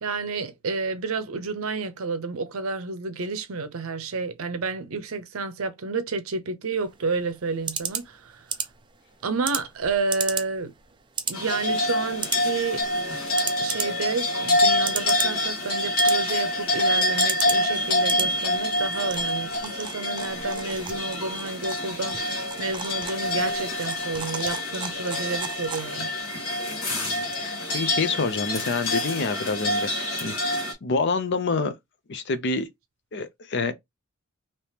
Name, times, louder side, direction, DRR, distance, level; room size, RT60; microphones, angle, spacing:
voice 1, 0.0-8.4 9.2-10.7 11.3-12.8 13.6-26.1, right 4 dB, 70° right, 0.6 m, -30 dB
Computer Mouse Noises, 6.8-26.2, right 7 dB, 20° right, 0.4 m, -36 dB
sound 1, 11.3-30.7, left 1 dB, 75° left, 1.4 m, -26 dB
voice 2, 26.9-31.7 32.1-32.7 33.1-33.7, left 4 dB, 55° left, 0.6 m, -28 dB
3.4 x 2.9 x 2.8 m
head